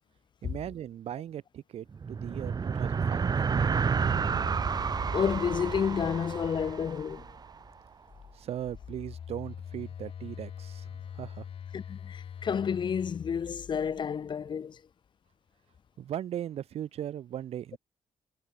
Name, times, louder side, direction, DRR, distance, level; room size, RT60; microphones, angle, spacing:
voice 1, 0.4-4.0 8.3-11.5 16.0-17.8, right 10 dB, 70° right, 1.8 m, -38 dB
sound 1, 1.9-7.6, right 6 dB, 40° right, 0.8 m, -30 dB
Telephone, 3.4-7.4 8.5-14.3, left 8 dB, 60° left, 5.4 m, -44 dB
voice 2, 5.1-7.3 11.7-14.8, left 7 dB, 45° left, 0.7 m, -30 dB
cardioid pair, 75°, 11 cm